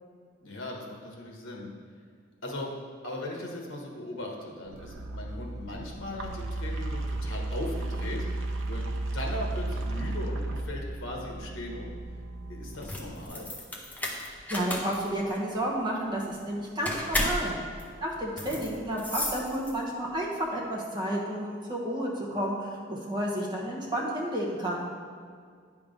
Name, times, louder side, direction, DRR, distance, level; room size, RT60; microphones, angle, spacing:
voice 1, 0.4-1.7 2.4-2.7 3.0-8.4 8.7-8.8 9.1-12.0 12.5-13.5 18.4-18.5, left 1 dB, 85° left, 0 dB, 1.3 m, -38 dB
sound 1, 4.7-13.3, right 2 dB, 85° right, 0.6 m, -34 dB
sound 2, 12.7-20.1, left 1 dB, 10° left, 0.6 m, -34 dB
voice 2, 14.2-17.5 18.0-24.9, right 1 dB, 20° right, -4 dB, 1.0 m, -31 dB
9.6 x 3.6 x 5.2 m, 2.1 s
head